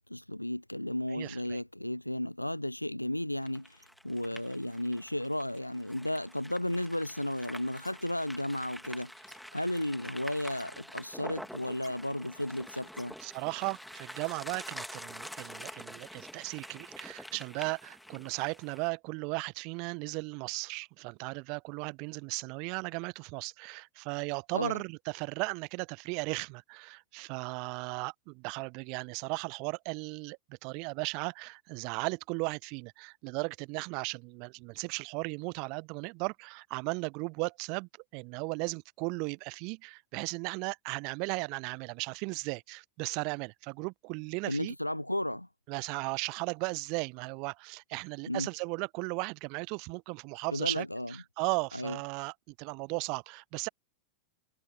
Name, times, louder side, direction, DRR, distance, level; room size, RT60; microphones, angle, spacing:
voice 1, 0.1-3.8 4.0-9.1 9.5-13.2 24.5-24.8 44.5-45.5 48.3-48.5 50.5-51.1 51.7-52.0, left 1 dB, 85° left, 0.4 m, -34 dB
voice 2, 1.1-1.6 13.2-44.7 45.7-53.7, right 32 dB, 45° right, 0.8 m, -36 dB
sound 1, 3.4-18.9, equal, ahead, 2.2 m, -47 dB
figure-of-eight pair, 90°, 0 cm